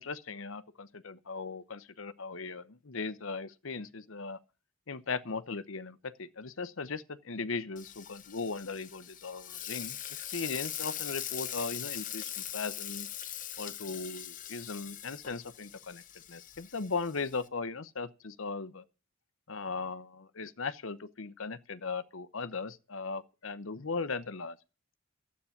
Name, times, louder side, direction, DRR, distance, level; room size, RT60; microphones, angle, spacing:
voice 1, 0.0-4.4 4.9-13.1 13.6-16.0 16.3-18.8 19.5-24.6, left 4 dB, 70° left, 0.9 m, -38 dB
Frying (food), 7.8-17.5, left 11 dB, 40° left, 1.0 m, -41 dB
12.5 x 8.5 x 7.2 m
head